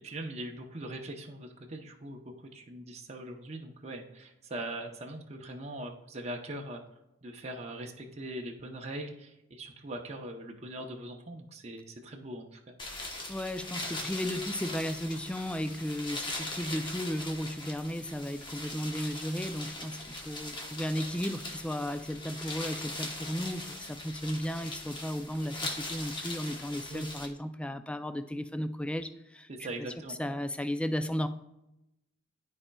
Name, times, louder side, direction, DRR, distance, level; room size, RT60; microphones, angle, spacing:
voice 1, 0.0-6.8 7.2-12.7 26.9-27.1 29.5-30.2, right 1 dB, 35° right, 2 dB, 0.7 m, -41 dB
sound 1, 12.8-27.3, left 2 dB, 25° left, 1.0 m, -40 dB
voice 2, 13.3-29.5 30.1-31.3, equal, 5° left, 9 dB, 0.3 m, -34 dB
12.5 x 4.3 x 2.3 m, 0.88 s
head